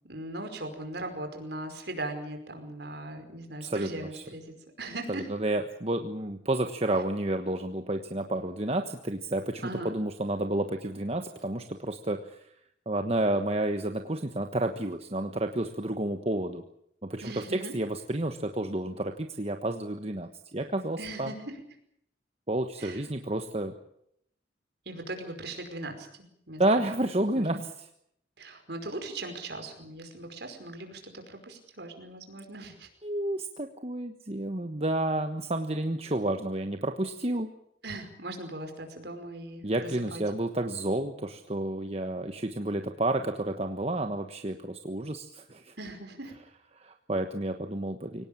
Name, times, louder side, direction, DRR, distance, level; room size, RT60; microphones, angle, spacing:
voice 1, 0.1-5.3 9.6-10.0 17.2-17.7 21.0-21.6 22.8-23.0 24.8-26.9 27.3-27.6 28.4-32.9 37.8-40.2 45.8-46.3, right 2 dB, 60° right, 6 dB, 5.1 m, -39 dB
voice 2, 5.1-12.5 12.9-16.6 17.1-21.3 22.5-23.7 26.6-27.7 33.0-37.5 39.6-45.7 46.8-48.2, right 1 dB, 35° right, 6 dB, 1.3 m, -30 dB
24.0 x 18.5 x 8.7 m, 0.72 s
head